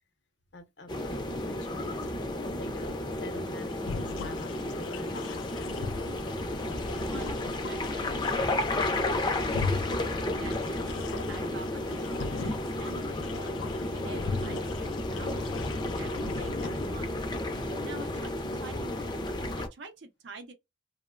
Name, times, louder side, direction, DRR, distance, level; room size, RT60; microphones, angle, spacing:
voice 1, 0.5-5.7, left 2 dB, 65° left, 0.7 m, -47 dB
sound 1, 0.9-19.7, left 1 dB, 25° left, 0.4 m, -32 dB
sound 2, 3.9-17.0, left 5 dB, 90° left, 0.3 m, -40 dB
voice 2, 6.9-8.7 9.3-10.0 10.3-17.2 17.5-19.0 19.6-20.5, right 3 dB, 75° right, 0.6 m, -48 dB
2.8 x 2.1 x 2.4 m
head